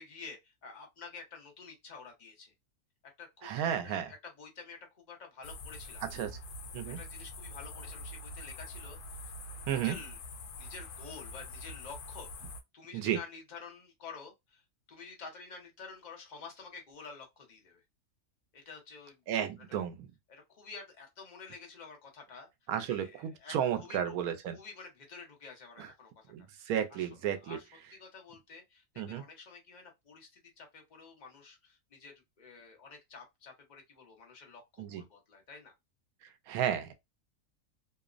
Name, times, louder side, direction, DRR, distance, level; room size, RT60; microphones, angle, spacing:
voice 1, 0.0-2.5 3.0-6.0 6.8-9.3 9.6-10.2 10.6-12.5 12.7-14.6 14.9-17.8 18.5-19.2 19.6-19.9 20.3-22.5 22.9-24.2 24.5-27.1 27.4-35.7, left 5 dB, 40° left, 0.8 m, -50 dB
voice 2, 3.4-4.1 6.0-6.3 6.7-7.0 9.7-10.0 12.9-13.2 19.3-20.1 22.7-24.6 25.8-25.9 26.3-27.6 29.0-29.2 34.8-35.0 36.5-36.9, right 9 dB, 85° right, 1.1 m, -33 dB
sound 1, 5.4-12.6, left 2 dB, 85° left, 1.1 m, -45 dB
2.9 x 2.0 x 2.4 m
omnidirectional pair, 1.5 m